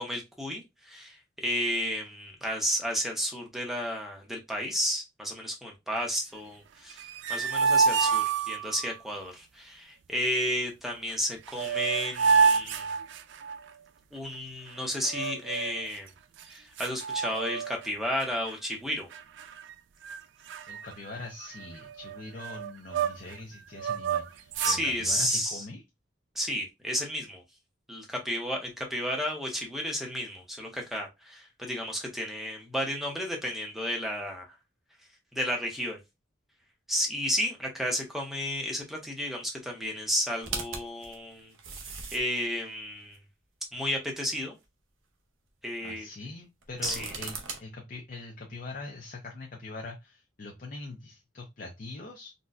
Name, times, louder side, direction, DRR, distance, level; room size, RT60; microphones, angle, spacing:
voice 1, 0.0-12.9 14.1-16.1 16.4-19.1 24.6-25.6 26.4-27.4 27.9-34.5 35.3-36.0 36.9-41.5 42.1-43.2 43.7-44.6 45.6-46.1 46.8-47.1, equal, ahead, 1 dB, 0.7 m, -32 dB
sound 1, 6.9-8.9 11.1-11.2 11.5-13.7 15.0-15.9 16.4-16.5 16.8-17.9 18.2-18.5 19.1-19.7 20.0-20.2 20.5-23.4 23.8-24.8, right 5 dB, 65° right, 0.3 m, -28 dB
voice 2, 20.7-25.8 45.8-52.3, left 3 dB, 45° left, 1 dB, 0.5 m, -42 dB
sound 2, 40.4-42.4 43.1-43.2 46.6-47.6, right 5 dB, 85° right, 0.7 m, -37 dB
4.0 x 2.2 x 2.4 m, 0.22 s
head